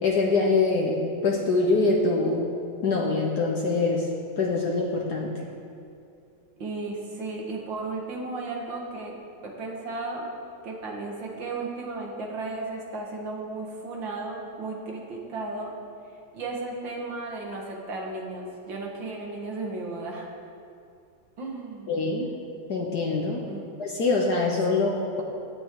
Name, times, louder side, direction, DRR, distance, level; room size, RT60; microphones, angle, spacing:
voice 1, 0.0-2.5 2.8-4.1 4.4-5.3 21.9-22.3 22.7-23.4 23.8-25.2, left 3 dB, 60° left, -1 dB, 1.5 m, -24 dB
voice 2, 6.6-9.2 9.4-10.3 10.6-15.7 16.3-20.3 21.4-22.0 23.5-23.7 24.7-24.9, right 3 dB, 75° right, -1 dB, 2.5 m, -34 dB
16.5 x 11.5 x 3.8 m, 2.5 s
omnidirectional pair, 2.1 m